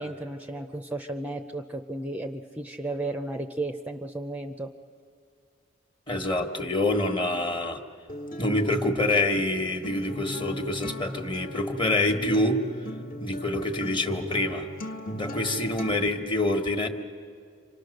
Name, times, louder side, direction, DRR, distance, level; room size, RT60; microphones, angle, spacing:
voice 1, 0.0-4.7, right 2 dB, 10° right, 5 dB, 0.6 m, -34 dB
voice 2, 6.1-7.8 8.4-12.6 13.2-14.7 15.1-16.9, left 2 dB, 25° left, 6 dB, 1.4 m, -26 dB
Acoustic guitar, 8.1-16.1, left 1 dB, 45° left, 1.5 m, -38 dB
27.5 x 25.0 x 6.5 m, 2.3 s
head